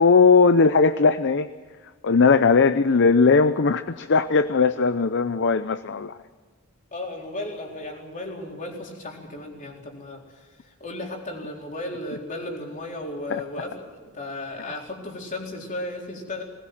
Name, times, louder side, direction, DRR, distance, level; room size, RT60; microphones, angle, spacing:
voice 1, 0.0-1.5 2.0-6.2 13.3-13.4, left 4 dB, 50° left, 12 dB, 0.6 m, -18 dB
voice 2, 6.9-16.4, left 1 dB, 35° left, 0 dB, 4.0 m, -35 dB
20.0 x 20.0 x 7.7 m, 1.5 s
head